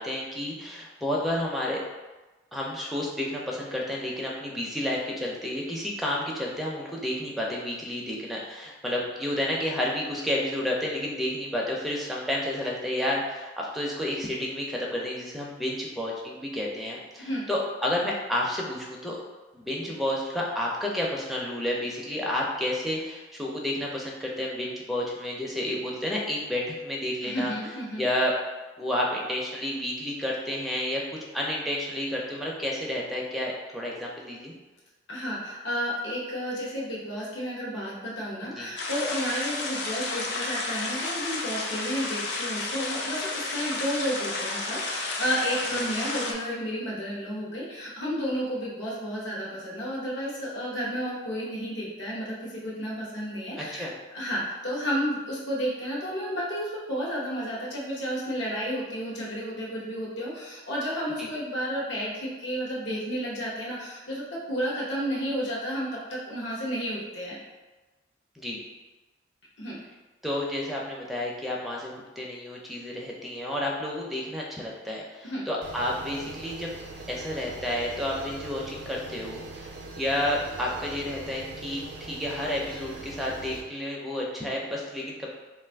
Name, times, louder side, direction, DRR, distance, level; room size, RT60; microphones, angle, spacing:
voice 1, 0.0-1.8 2.5-19.2 19.5-27.5 28.0-28.3 28.8-34.5 38.6-38.7 45.7-45.8 53.6-53.9 61.2-61.3 68.4-68.6 70.2-76.7 77.1-85.3, left 1 dB, ahead, -3 dB, 0.4 m, -31 dB
voice 2, 27.2-28.1 35.1-53.9 54.1-67.4 69.6-69.8 75.2-75.4, equal, 80° left, -5 dB, 0.9 m, -32 dB
Small stream in a square at night, 38.8-46.3, left 3 dB, 65° left, 0.4 m, -32 dB
sound 1, 75.6-83.6, right 2 dB, 70° right, 0.4 m, -42 dB
2.5 x 2.4 x 3.3 m, 1.2 s
head